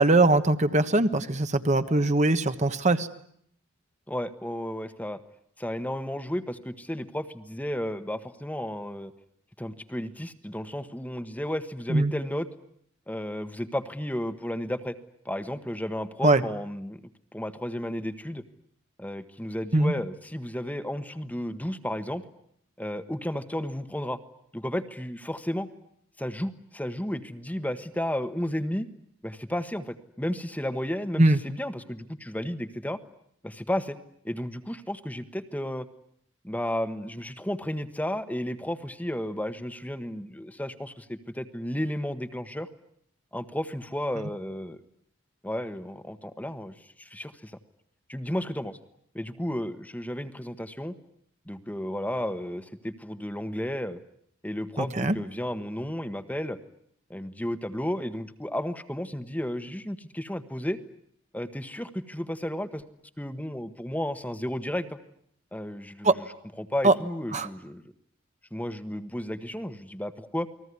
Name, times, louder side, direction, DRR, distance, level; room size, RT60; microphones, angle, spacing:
voice 1, 0.0-3.1 11.9-12.1 16.2-16.4 19.7-19.9 31.2-31.4 54.8-55.1 66.0-66.1 66.8-66.9 67.3-67.5, right 2 dB, 35° right, 10 dB, 1.3 m, -21 dB
voice 2, 4.1-5.2 5.6-9.1 9.6-12.5 13.1-14.9 15.2-17.0 17.3-18.4 19.0-22.2 22.8-24.2 24.5-25.7 26.2-28.9 29.2-33.0 33.4-34.0 34.2-35.9 36.4-42.7 43.3-44.8 45.4-47.6 48.1-48.8 49.1-50.9 51.5-54.0 54.4-56.6 57.1-60.8 61.3-62.8 63.2-65.0 65.5-66.3 66.6-67.9 68.5-70.5, left 1 dB, 5° left, 9 dB, 1.3 m, -33 dB
29.0 x 20.5 x 9.7 m, 0.68 s
head